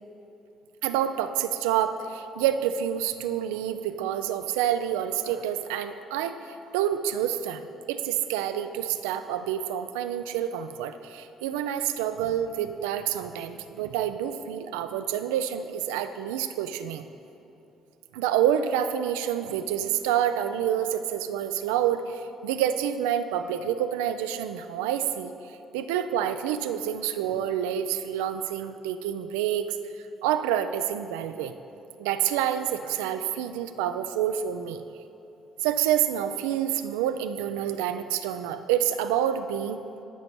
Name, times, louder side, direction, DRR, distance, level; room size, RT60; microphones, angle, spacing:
voice 1, 0.8-17.1 18.1-29.8 30.2-31.5 32.0-34.8 35.6-39.8, right 10 dB, 85° right, 9 dB, 0.3 m, -28 dB
10.5 x 5.2 x 4.5 m, 3.0 s
hypercardioid pair, 55°, 0 cm